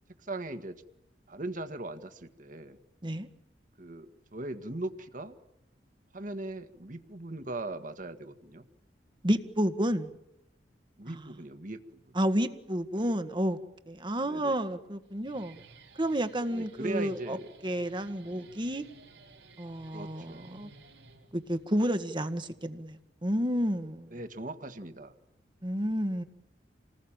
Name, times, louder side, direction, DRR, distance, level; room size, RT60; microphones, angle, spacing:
voice 1, 0.2-0.8 1.3-2.8 3.8-5.3 6.1-8.6 11.0-11.8 12.1-12.2 14.2-14.5 16.5-17.5 18.2-18.5 19.9-20.6 24.1-25.1, right 2 dB, 50° right, 8 dB, 1.6 m, -39 dB
voice 2, 9.2-10.1 11.1-11.2 12.1-13.6 13.9-15.6 16.0-17.4 17.6-18.8 19.6-20.7 21.3-24.1 25.6-26.2, equal, 25° right, 9 dB, 1.6 m, -30 dB
Guitar, 15.0-21.6, right 3 dB, 80° right, 4.2 m, -55 dB
27.0 x 20.0 x 8.9 m, 0.82 s
head